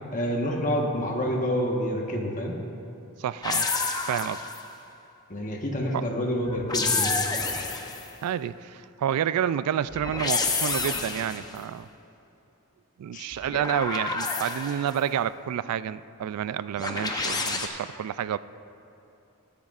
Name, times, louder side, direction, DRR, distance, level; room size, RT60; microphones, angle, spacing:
voice 1, 0.1-2.6 5.3-7.2 13.1-13.3, equal, 35° left, 0 dB, 1.3 m, -28 dB
voice 2, 3.2-3.7 4.1-4.4 5.9-6.0 8.2-11.9 13.0-18.4, right 9 dB, 80° right, 17 dB, 0.3 m, -29 dB
sound 1, 3.4-4.7 6.5-8.1 9.9-11.5 13.3-15.0 16.8-17.7, left 4 dB, 20° left, 0.7 m, -29 dB
20.5 x 9.4 x 2.5 m, 2.8 s
head